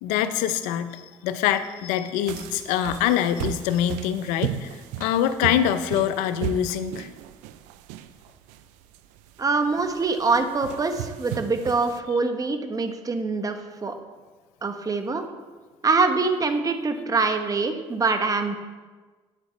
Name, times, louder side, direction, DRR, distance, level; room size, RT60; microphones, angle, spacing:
voice 1, 0.0-7.1, left 10 dB, 90° left, 12 dB, 0.5 m, -25 dB
sound 1, 2.3-12.0, right 11 dB, 90° right, 0.4 m, -36 dB
voice 2, 9.4-14.0 14.6-15.2 15.8-18.6, right 4 dB, 30° right, 7 dB, 1.0 m, -24 dB
9.3 x 8.4 x 3.2 m, 1.3 s
supercardioid pair, 80°, 12 cm